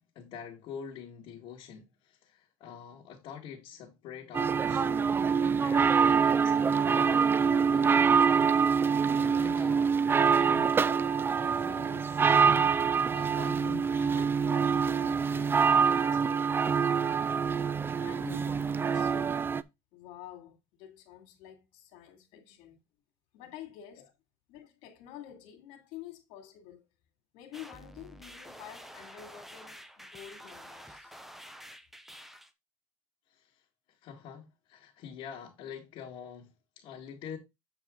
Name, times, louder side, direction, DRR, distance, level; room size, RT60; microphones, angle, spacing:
voice 1, 0.1-8.0 9.2-9.9 10.1-16.5 22.3-22.4 33.3-33.5 34.0-37.4, left 8 dB, 60° left, 2.2 m, -46 dB
sound 1, 4.3-19.6, right 6 dB, 20° right, 0.4 m, -25 dB
voice 2, 17.9-19.4 19.9-22.8 23.3-24.1 24.5-26.8 27.3-31.2, left 11 dB, 80° left, 2.5 m, -49 dB
sound 2, 27.5-32.5, equal, 5° right, 0.9 m, -49 dB
8.2 x 4.9 x 3.8 m
cardioid pair, 120°, 10 cm